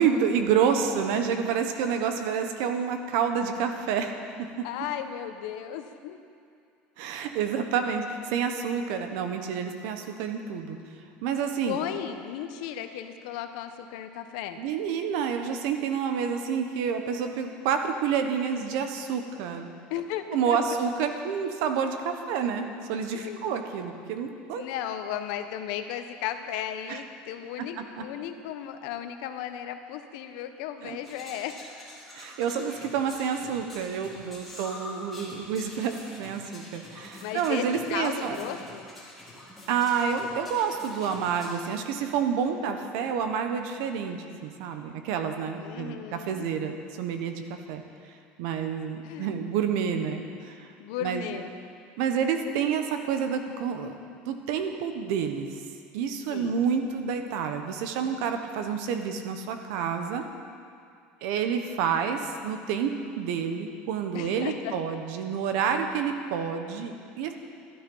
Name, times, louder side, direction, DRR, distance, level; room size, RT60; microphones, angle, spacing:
voice 1, 0.0-4.1 4.6-4.7 7.0-10.8 11.2-11.8 14.6-19.7 20.3-24.6 26.9-27.0 27.6-28.0 30.8-31.0 32.1-38.4 39.7-47.8 48.4-50.7 51.0-51.3 52.0-53.9 54.3-55.5 55.9-60.3 61.2-67.3, right 7 dB, 70° right, 6 dB, 1.2 m, -29 dB
voice 2, 4.6-6.2 11.7-14.6 19.9-20.6 23.1-23.5 24.5-31.6 37.2-38.9 45.6-46.5 49.0-49.4 50.8-51.5 56.3-56.6 64.1-65.0, left 10 dB, 75° left, 8 dB, 1.0 m, -35 dB
sound 1, 31.0-41.5, left 1 dB, ahead, 2.8 m, -46 dB
12.5 x 12.5 x 5.6 m, 2.4 s
cardioid pair, 165°, 4 cm